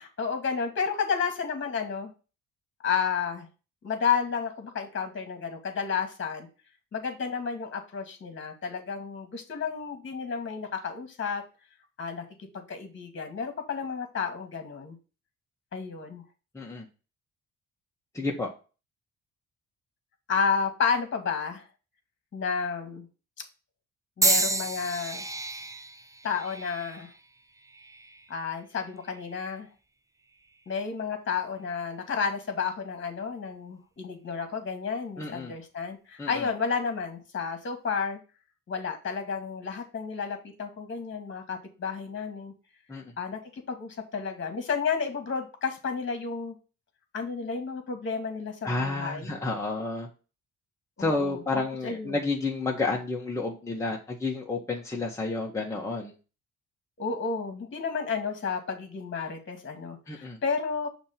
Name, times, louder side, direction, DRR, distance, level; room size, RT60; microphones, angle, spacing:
voice 1, 0.0-2.1 2.8-3.5 3.8-6.5 6.9-11.4 12.0-12.2 12.5-15.0 15.7-16.2 20.3-21.7 22.3-23.1 24.2-25.2 26.2-27.1 28.3-29.7 30.7-38.2 38.7-42.5 43.2-46.5 47.1-49.3 51.0-52.2 57.0-60.9, left 5 dB, 40° left, 6 dB, 1.6 m, -31 dB
voice 2, 16.5-16.9 18.1-18.5 35.2-35.5 36.2-36.5 42.9-43.1 48.6-50.1 51.0-56.1 60.1-60.4, left 3 dB, 10° left, -2 dB, 1.2 m, -30 dB
sound 1, 24.2-28.3 29.1-29.5 30.4-30.6, right 2 dB, 10° right, 0.4 m, -31 dB
6.3 x 3.0 x 5.7 m, 0.33 s
cardioid pair, 90°, 30 cm